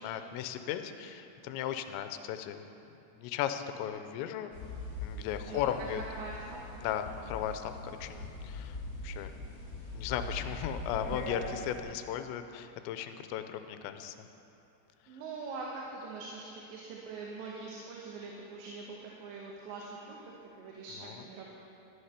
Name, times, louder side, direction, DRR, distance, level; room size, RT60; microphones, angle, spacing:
voice 1, 0.0-2.6 3.2-4.5 5.0-6.0 6.8-7.7 8.0-8.8 9.0-9.3 9.9-14.3 21.0-21.1, left 10 dB, 85° left, 9 dB, 2.9 m, -36 dB
sound 1, 4.5-11.8, left 2 dB, 45° left, 2.3 m, -41 dB
voice 2, 5.4-6.8 7.2-7.3 15.1-21.5, right 3 dB, 80° right, -2 dB, 3.4 m, -43 dB
13.0 x 10.0 x 5.8 m, 2.8 s
omnidirectional pair, 5.0 m